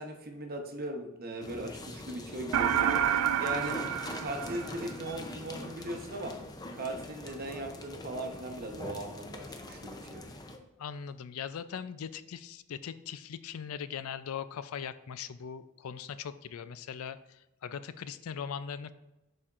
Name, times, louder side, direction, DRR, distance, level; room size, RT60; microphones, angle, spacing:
voice 1, 0.0-3.0 3.4-3.9 4.2-6.3 6.7-10.2, right 1 dB, 45° right, 3 dB, 0.9 m, -39 dB
sound 1, 1.4-10.6, left 1 dB, 20° left, 0.5 m, -43 dB
sound 2, 2.5-5.2, right 9 dB, 80° right, 0.4 m, -29 dB
voice 2, 10.8-18.9, left 7 dB, 80° left, 13 dB, 0.4 m, -40 dB
11.5 x 4.3 x 2.5 m, 0.99 s
head